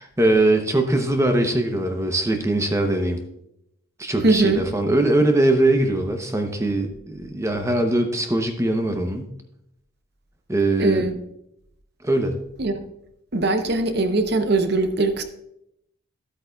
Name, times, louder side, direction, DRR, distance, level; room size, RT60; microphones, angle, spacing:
voice 1, 0.0-3.2 4.0-9.3 10.5-11.0 12.0-12.3, right 1 dB, 15° right, 5 dB, 0.7 m, -21 dB
voice 2, 4.2-4.6 10.8-11.1 12.6-12.7 13.3-15.2, right 3 dB, 50° right, 7 dB, 0.8 m, -21 dB
13.5 x 8.2 x 2.3 m, 0.79 s
head